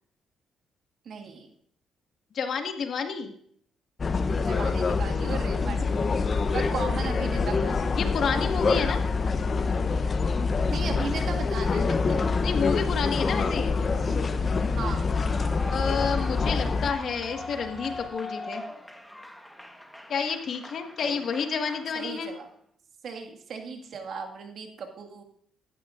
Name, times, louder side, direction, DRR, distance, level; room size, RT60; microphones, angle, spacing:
voice 1, 1.1-1.5 4.3-5.9 6.5-7.9 10.7-12.4 14.8-15.1 21.0-21.2 22.0-22.5 23.0-25.2, right 5 dB, 65° right, 4 dB, 1.9 m, -36 dB
voice 2, 2.3-3.3 7.9-9.0 12.4-13.8 15.7-18.6 20.1-22.3, left 6 dB, 60° left, 5 dB, 1.6 m, -30 dB
sound 1, 4.0-16.9, left 4 dB, 40° left, 0.8 m, -26 dB
sound 2, 5.8-18.1, left 5 dB, 80° left, 1.5 m, -44 dB
Clapping / Cheering / Applause, 15.1-22.4, left 1 dB, 5° left, 1.2 m, -42 dB
16.0 x 11.5 x 2.5 m, 0.62 s
cardioid pair, 90°, 0 cm